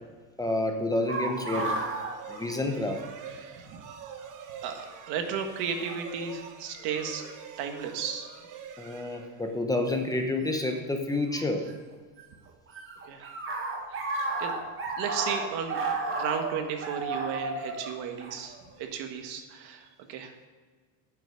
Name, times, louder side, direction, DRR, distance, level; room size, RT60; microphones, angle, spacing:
voice 1, 0.4-1.8 2.3-3.0 8.8-11.7, left 2 dB, 10° left, 4 dB, 0.9 m, -29 dB
sound 1, 1.1-3.2 3.4-3.5 4.5-4.8 5.8-6.0 6.8-7.2 9.9-10.0 11.3-12.2 12.5-19.0, right 3 dB, 30° right, 1.9 m, -33 dB
sound 2, 1.1-9.9, right 7 dB, 50° right, 1.3 m, -46 dB
voice 2, 3.3-3.8 4.6-7.3 7.6-8.3 13.1-13.3 13.9-14.5 15.0-15.8 16.1-20.5, right 7 dB, 70° right, 5 dB, 1.6 m, -34 dB
9.0 x 7.2 x 6.4 m, 1.5 s
cardioid pair, 135°, 40 cm